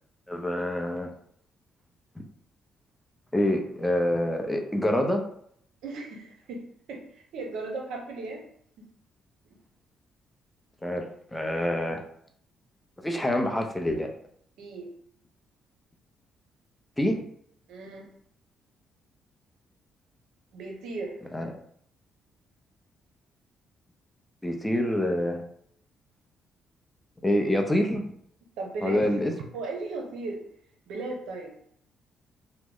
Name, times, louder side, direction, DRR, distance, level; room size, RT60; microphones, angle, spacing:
voice 1, 0.3-1.1 3.3-5.3 10.8-12.0 13.0-14.1 17.0-17.2 21.3-21.5 24.4-25.4 27.2-28.0 28.8-29.3, left 1 dB, 10° left, 3 dB, 0.5 m, -26 dB
voice 2, 5.8-6.6 6.9-8.4 9.5-9.6 14.6-14.9 17.7-18.1 20.5-21.2 28.6-29.1 29.5-30.4 30.9-31.5, right 3 dB, 85° right, 1 dB, 0.7 m, -36 dB
3.0 x 2.1 x 3.7 m, 0.65 s
cardioid pair, 90°, 0 cm